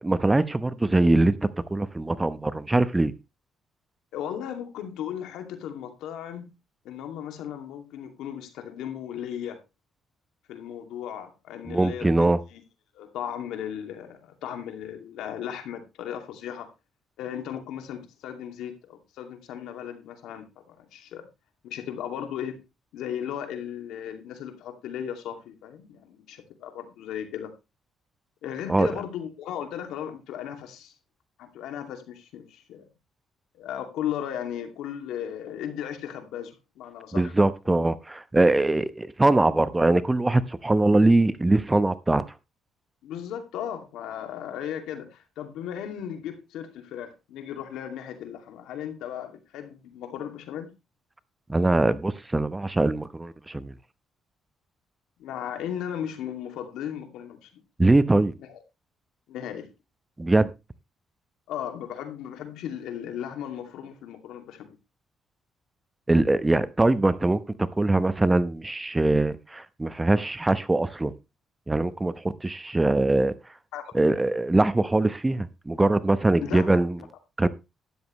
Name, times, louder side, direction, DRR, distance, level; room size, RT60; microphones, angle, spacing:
voice 1, 0.0-1.4 1.7-3.1 11.7-12.4 28.7-28.9 37.1-42.2 51.5-53.7 57.8-58.3 60.2-60.5 66.1-71.1 71.7-72.1 72.4-73.3 73.9-77.0 77.4-77.5, right 2 dB, 15° right, 0.9 m, -22 dB
voice 2, 4.1-6.5 6.8-9.6 10.5-12.1 12.5-12.6 12.9-16.7 17.2-21.3 21.6-22.6 22.9-27.5 28.4-30.9 31.4-32.8 33.5-37.3 43.0-50.7 55.2-57.6 58.5-58.6 59.3-59.7 61.5-64.7 73.7-73.8 76.4-76.8, left 9 dB, 90° left, 2.4 m, -36 dB
12.5 x 10.0 x 3.1 m
cardioid pair, 90°, 0 cm